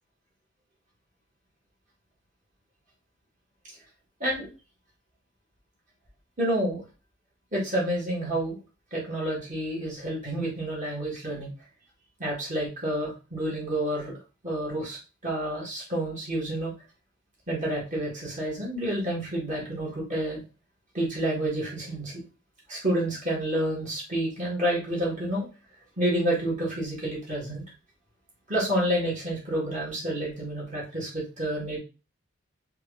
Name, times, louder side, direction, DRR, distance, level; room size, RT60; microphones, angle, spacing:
voice 1, 6.4-6.8 7.5-8.6 8.9-11.5 12.2-14.2 14.4-15.0 15.2-16.7 17.5-20.4 20.9-22.2 22.7-25.4 26.0-27.6 28.5-31.8, right 1 dB, 40° right, -4 dB, 1.8 m, -29 dB
4.5 x 2.5 x 3.3 m, 0.31 s
head